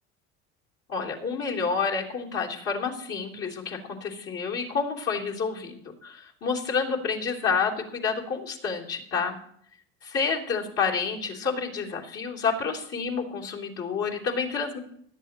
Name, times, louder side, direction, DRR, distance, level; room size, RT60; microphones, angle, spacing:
voice 1, 0.9-9.4 10.0-14.8, left 5 dB, 40° left, -2 dB, 3.5 m, -29 dB
17.0 x 12.0 x 3.0 m, 0.67 s
hypercardioid pair, 80°, 35 cm